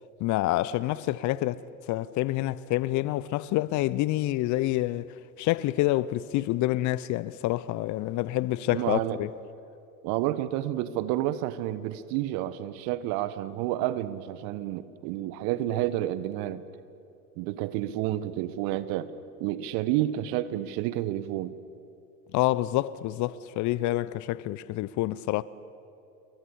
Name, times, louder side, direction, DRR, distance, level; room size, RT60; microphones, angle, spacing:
voice 1, 0.2-1.6 1.9-5.1 5.4-9.3 22.3-25.4, left 16 dB, 40° left, 0.7 m, -27 dB
voice 2, 8.7-9.2 10.0-16.6 17.4-19.1 19.4-21.5, right 13 dB, 50° right, 1.4 m, -30 dB
29.0 x 22.5 x 8.6 m
hypercardioid pair, 85°, 46 cm